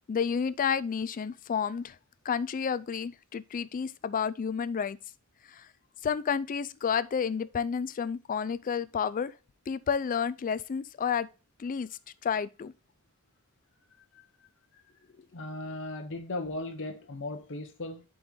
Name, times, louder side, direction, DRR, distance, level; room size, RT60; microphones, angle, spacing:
voice 1, 0.1-2.0 2.3-5.0 5.5-5.6 6.0-9.3 9.7-11.3 11.6-11.9 12.2-12.7, left 6 dB, 40° left, 0.3 m, -30 dB
voice 2, 15.3-18.0, left 2 dB, 60° left, 0.8 m, -37 dB
11.5 x 3.9 x 3.1 m
head